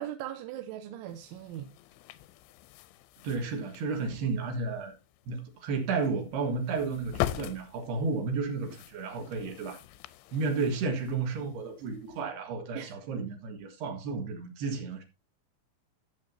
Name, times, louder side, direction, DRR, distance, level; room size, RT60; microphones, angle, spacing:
voice 1, 0.0-1.7 12.7-13.2, right 11 dB, 85° right, 3.1 m, -40 dB
sound 1, 1.1-12.2, left 14 dB, 85° left, 2.5 m, -42 dB
voice 2, 3.2-4.9 5.3-9.8 10.3-15.0, right 4 dB, 65° right, 3.3 m, -32 dB
14.5 x 7.7 x 2.7 m
omnidirectional pair, 5.6 m